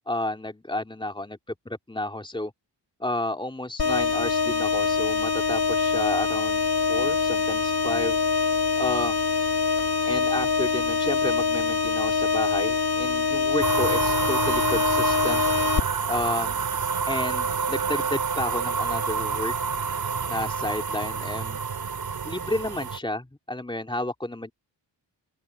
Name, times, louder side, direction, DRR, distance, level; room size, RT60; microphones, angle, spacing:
voice 1, 0.1-2.5 3.0-6.6 6.9-8.2 8.8-9.2 10.0-15.4 16.1-16.6 17.1-19.5 20.3-21.6 22.2-24.5, left 1 dB, 10° left, 3.3 m, -31 dB
sound 1, 3.8-15.8, left 5 dB, 60° left, 2.3 m, -24 dB
sound 2, 13.6-23.0, right 6 dB, 55° right, 3.4 m, -28 dB
open air
cardioid pair, 100°, 43 cm